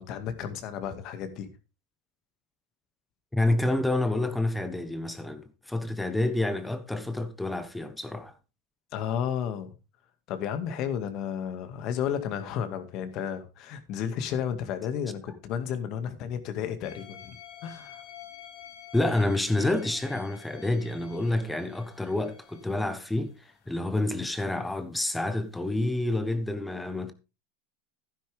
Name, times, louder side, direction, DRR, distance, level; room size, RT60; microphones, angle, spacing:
voice 1, 0.0-1.5 8.9-9.7 10.3-17.3 17.6-18.0, left 8 dB, 50° left, 2.0 m, -32 dB
voice 2, 3.3-8.3 18.9-23.3 23.7-27.1, left 2 dB, 5° left, 1.1 m, -28 dB
sound 1, 16.8-23.4 25.8-25.9, left 10 dB, 65° left, 4.0 m, -49 dB
12.0 x 10.5 x 3.5 m
supercardioid pair, 120°, 0 cm